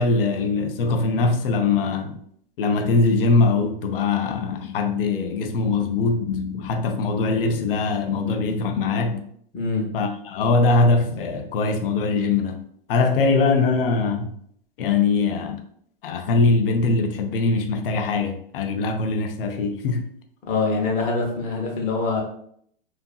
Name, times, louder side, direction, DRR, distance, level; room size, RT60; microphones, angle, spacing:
voice 1, 0.0-2.2 2.6-9.2 9.9-12.6 12.9-14.3 14.8-15.6 16.0-20.1, left 3 dB, 70° left, 0.5 m, -22 dB
voice 2, 9.5-9.9 20.5-22.2, left 3 dB, 25° left, 0.7 m, -24 dB
2.7 x 2.5 x 2.3 m
hypercardioid pair, 125°, 29 cm